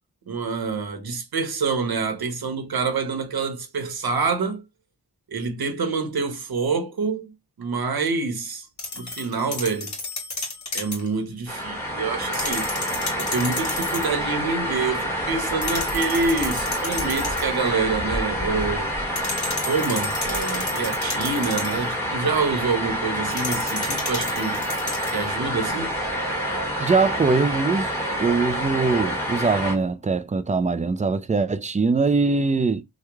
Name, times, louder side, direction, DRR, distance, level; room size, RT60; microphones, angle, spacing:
voice 1, 0.3-4.6 5.3-7.3 7.6-8.7 8.9-10.0 10.7-12.7 13.2-18.9 19.7-24.6 25.1-26.0, right 4 dB, 70° right, 1.0 m, -26 dB
sound 1, 8.8-11.1 12.2-14.2 15.6-17.6 19.2-21.9 23.3-25.3, left 2 dB, 45° left, 1.4 m, -32 dB
sound 2, 11.5-29.8, equal, 5° left, 1.5 m, -27 dB
voice 2, 26.8-27.9 28.2-32.8, right 4 dB, 20° right, 0.3 m, -22 dB
3.0 x 2.2 x 3.4 m
wide cardioid pair, 75°, 38 cm